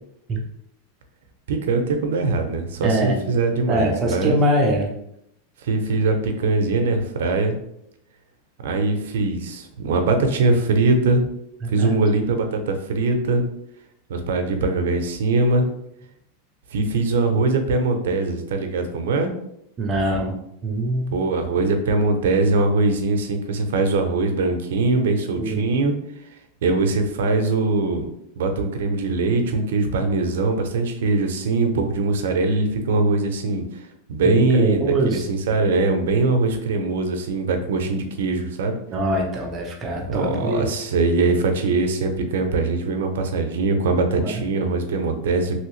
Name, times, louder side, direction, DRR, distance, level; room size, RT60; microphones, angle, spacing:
voice 1, 1.5-4.4 5.6-7.6 8.6-11.2 11.7-13.4 14.1-15.7 16.7-19.3 21.1-25.9 26.6-28.1 28.4-33.6 34.1-38.8 40.1-45.6, right 3 dB, 85° right, 5 dB, 0.6 m, -21 dB
voice 2, 2.8-3.2 3.7-4.9 11.6-11.9 19.8-20.3 20.6-21.1 25.4-25.6 34.2-35.2 38.9-40.7 44.2-44.4, right 1 dB, 25° right, 1 dB, 0.6 m, -23 dB
3.0 x 2.8 x 3.1 m, 0.76 s
supercardioid pair, 160°, 0 cm